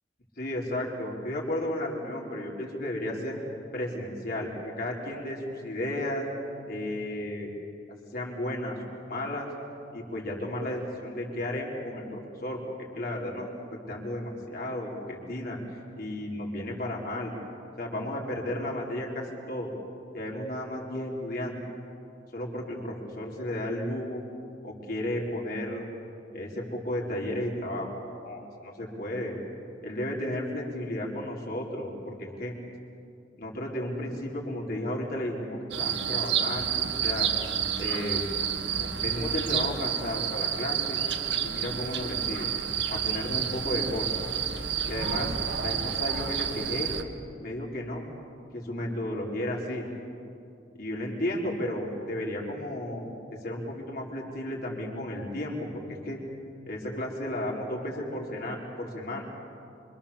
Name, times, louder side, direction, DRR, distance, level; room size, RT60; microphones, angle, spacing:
voice 1, 0.4-3.4 3.7-4.5 4.8-6.3 6.7-7.5 8.1-8.8 9.1-9.5 9.9-12.6 12.9-13.5 13.9-17.3 17.8-19.7 20.1-21.6 22.3-24.2 24.6-25.9 26.3-27.9 28.2-29.3 29.8-32.5 33.4-37.3 37.8-38.2 38.8-41.0 41.4-42.5 42.9-44.1 44.9-45.3 45.6-46.9 47.4-48.0 48.5-49.8 50.8-53.0 53.4-56.2 56.7-59.2, left 1 dB, 55° left, -2 dB, 4.9 m, -33 dB
sound 1, 35.7-47.0, right 8 dB, 70° right, 1.8 m, -29 dB
27.0 x 26.0 x 7.4 m, 2.5 s
head